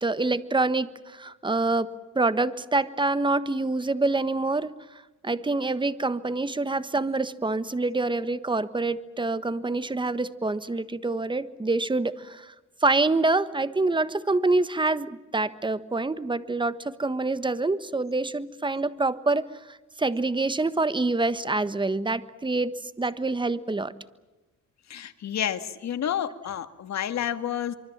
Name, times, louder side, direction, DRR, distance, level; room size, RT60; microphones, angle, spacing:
voice 1, 0.0-12.5 12.8-23.9, right 3 dB, 15° right, 14 dB, 1.4 m, -26 dB
voice 2, 24.9-27.7, left 10 dB, 65° left, 10 dB, 2.0 m, -30 dB
25.0 x 24.5 x 7.4 m, 1.1 s
cardioid pair, 90°, 30 cm